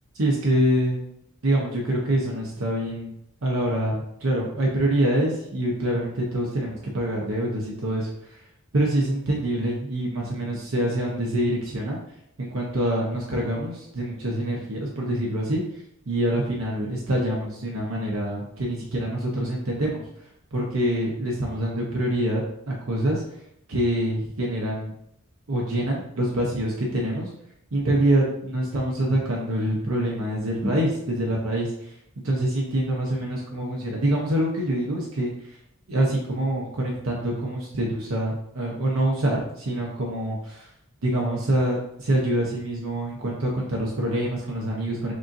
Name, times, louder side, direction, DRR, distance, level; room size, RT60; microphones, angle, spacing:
voice 1, 0.1-1.0 1.4-3.1 3.4-8.4 8.7-12.0 12.4-15.6 16.1-20.0 20.5-22.4 22.7-23.2 23.7-24.9 25.5-27.3 27.7-31.9 32.2-35.3 35.9-40.7 41.0-45.1, right 1 dB, 70° right, -2 dB, 0.8 m, -25 dB
6.6 x 2.6 x 2.5 m, 0.78 s
head